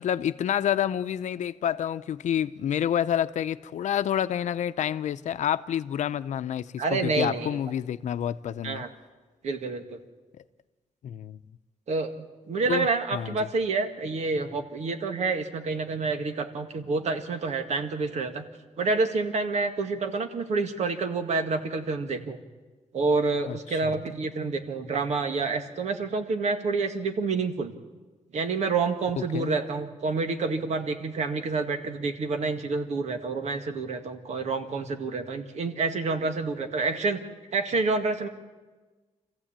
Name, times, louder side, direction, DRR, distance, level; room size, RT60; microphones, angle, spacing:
voice 1, 0.0-8.8 11.0-11.4 12.7-12.9 13.1-13.4 23.5-24.0 29.3-29.5, left 10 dB, 90° left, 0.7 m, -28 dB
voice 2, 6.8-7.6 8.6-8.9 9.4-10.0 11.9-18.5 18.8-22.4 22.9-27.7 28.3-37.2 37.5-38.3, right 4 dB, 70° right, 2.0 m, -28 dB
26.5 x 15.0 x 8.9 m
wide cardioid pair, 145°, 12 cm